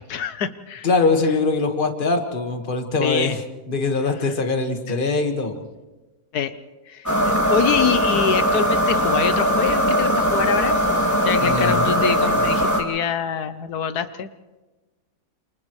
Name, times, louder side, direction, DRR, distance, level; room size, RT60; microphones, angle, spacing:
voice 1, 0.0-0.9 3.0-3.4 6.3-6.5 6.9-10.8 11.2-14.3, left 7 dB, 70° left, 11 dB, 1.4 m, -25 dB
voice 2, 0.8-3.4 3.7-5.6 11.4-12.0 12.4-12.5, left 3 dB, 30° left, 5 dB, 1.8 m, -22 dB
sound 1, 7.1-12.8, equal, 10° left, 2.8 m, -20 dB
29.5 x 28.0 x 3.2 m, 1.2 s
omnidirectional pair, 1.7 m